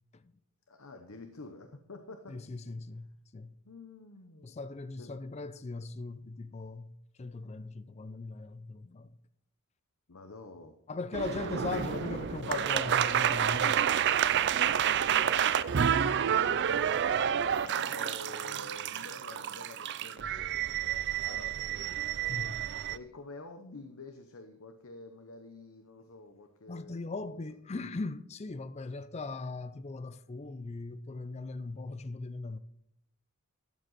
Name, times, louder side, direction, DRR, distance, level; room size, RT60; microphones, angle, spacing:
voice 1, 0.7-2.4 3.6-4.5 5.0-5.1 10.1-10.8 14.6-15.8 16.3-16.8 17.4-22.6 22.9-27.4, left 2 dB, 65° left, 0.9 m, -49 dB
voice 2, 2.3-3.5 4.4-6.9 7.2-9.1 10.9-13.8 22.3-22.5 26.7-32.6, left 3 dB, 30° left, 0.4 m, -39 dB
sound 1, 11.1-23.0, right 9 dB, 50° right, 0.5 m, -29 dB
12.5 x 7.8 x 4.1 m
head